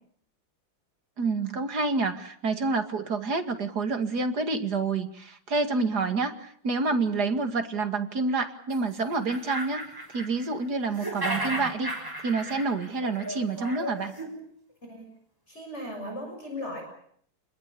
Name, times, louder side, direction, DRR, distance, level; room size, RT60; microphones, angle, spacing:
voice 1, 1.2-11.9 12.2-14.1, right 3 dB, 50° right, 7 dB, 2.7 m, -28 dB
sound 1, 8.7-8.8 9.1-10.6 10.9-14.3, right 1 dB, 10° right, 6.6 m, -34 dB
voice 2, 15.5-16.8, left 1 dB, 30° left, 2 dB, 7.5 m, -37 dB
29.5 x 21.5 x 7.0 m, 0.62 s
omnidirectional pair, 2.3 m